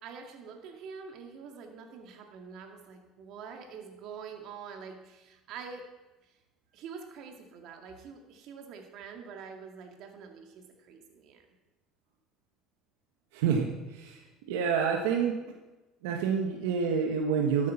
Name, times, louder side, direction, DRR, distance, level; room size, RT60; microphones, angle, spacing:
voice 1, 0.0-5.9 6.7-11.4, right 6 dB, 60° right, 3 dB, 2.1 m, -45 dB
voice 2, 13.3-14.2 14.5-15.4 16.0-17.7, right 6 dB, 90° right, 2 dB, 1.4 m, -28 dB
13.0 x 8.4 x 5.8 m, 1.1 s
supercardioid pair, 115°, 0 cm